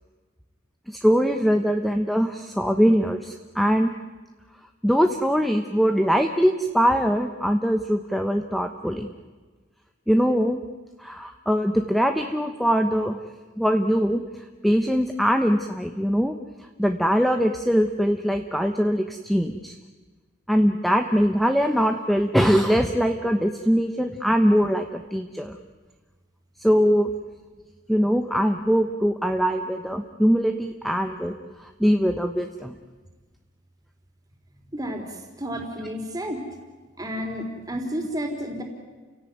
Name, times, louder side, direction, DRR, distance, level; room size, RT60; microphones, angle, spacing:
voice 1, 0.9-3.9 4.8-9.1 10.1-10.6 11.0-13.2 13.6-16.4 16.8-19.8 20.5-25.6 26.6-27.1 27.9-32.7, equal, ahead, 6 dB, 1.0 m, -22 dB
voice 2, 34.7-36.4 37.0-38.6, equal, 20° right, 3 dB, 3.9 m, -31 dB
30.0 x 17.0 x 9.4 m, 1.4 s
head